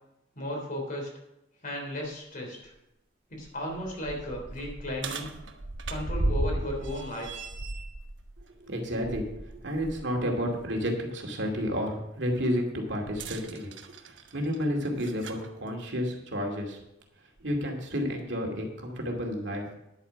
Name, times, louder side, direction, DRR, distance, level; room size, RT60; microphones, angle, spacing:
voice 1, 0.4-1.1 1.6-2.7 3.3-5.3 5.9-7.4, left 1 dB, 45° left, 0 dB, 3.6 m, -35 dB
sound 1, 2.0-2.1 2.6-2.7 3.3-10.0 10.4-10.6 13.0-15.5 16.5-16.6 17.4-17.5, right 2 dB, 80° right, 1.1 m, -35 dB
voice 2, 8.4-13.7 14.0-16.8 17.4-19.7, equal, 65° right, 1 dB, 2.4 m, -31 dB
10.5 x 8.7 x 5.8 m, 0.87 s
head